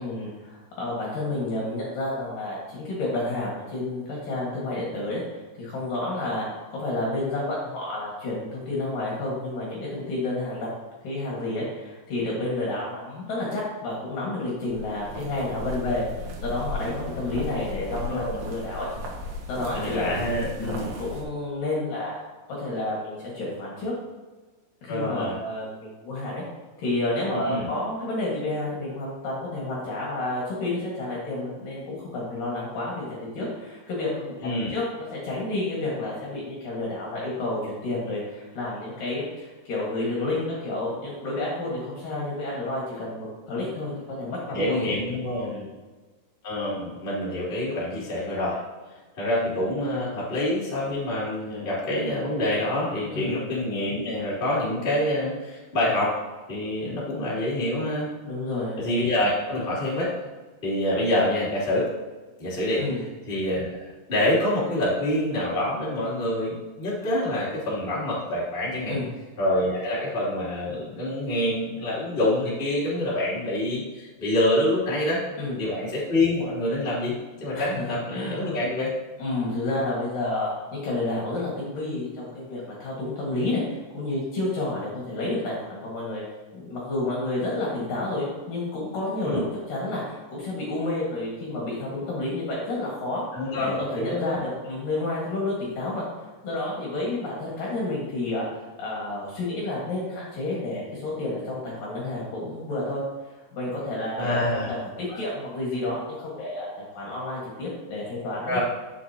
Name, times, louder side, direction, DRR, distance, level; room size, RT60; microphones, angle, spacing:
voice 1, 0.0-5.2 5.6-6.5 6.7-10.7 11.0-16.0 16.4-18.9 19.5-20.2 20.6-22.1 22.6-23.9 24.8-26.4 26.8-43.9 44.2-44.9 45.4-45.7 53.1-53.4 58.2-58.8 62.8-63.0 68.8-69.1 75.4-75.6 77.5-78.6 79.2-86.2 86.5-89.4 89.7-93.3 93.6-96.0 96.4-98.5 98.8-103.0 103.5-108.6, left 2 dB, 55° left, -5 dB, 3.0 m, -30 dB
sound 1, 14.7-21.2, left 1 dB, 70° right, 3.3 m, -35 dB
voice 2, 18.0-18.4 19.7-20.9 24.9-25.4 27.3-27.7 34.4-34.7 44.5-45.5 46.4-48.6 49.2-56.1 56.5-58.1 58.8-60.1 60.6-61.9 62.4-62.8 63.3-69.0 69.4-75.2 75.6-78.9 89.2-89.4 93.3-94.4 104.2-104.7 105.1-105.2 108.4-108.6, left 1 dB, 15° left, -7 dB, 2.4 m, -26 dB
10.5 x 7.5 x 2.9 m, 1.3 s
omnidirectional pair, 5.2 m